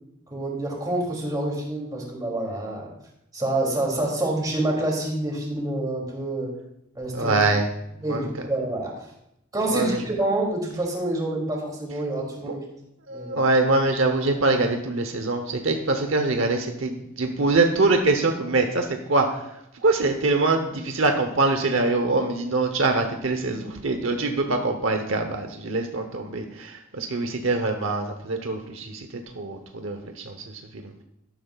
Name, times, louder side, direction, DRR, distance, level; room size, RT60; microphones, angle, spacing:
voice 1, 0.3-2.9 3.3-6.5 6.9-7.4 8.0-8.9 9.5-12.6 13.1-13.4, right 1 dB, 20° right, -2 dB, 2.9 m, -27 dB
voice 2, 7.1-7.7 8.1-8.5 9.7-10.1 12.4-12.5 13.1-30.9, right 3 dB, 75° right, 5 dB, 1.0 m, -24 dB
13.0 x 12.0 x 2.4 m, 0.81 s
head